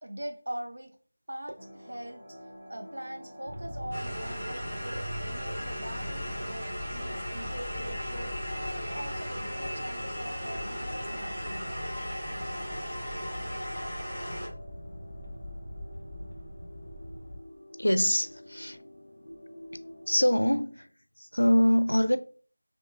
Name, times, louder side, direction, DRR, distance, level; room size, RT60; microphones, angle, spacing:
voice 1, 0.0-0.9 1.3-2.4 2.7-11.8, right 1 dB, 60° right, 0.7 m, -42 dB
sound 1, 1.6-20.3, left 1 dB, 20° right, 2.0 m, -50 dB
sound 2, 3.5-17.4, equal, 45° right, 1.6 m, -41 dB
sound 3, 3.9-14.5, equal, ahead, 1.9 m, -37 dB
voice 2, 17.8-18.8 20.1-20.9 21.2-22.2, equal, 85° left, 0.4 m, -24 dB
4.3 x 3.0 x 2.5 m
figure-of-eight pair, 170°, 0 cm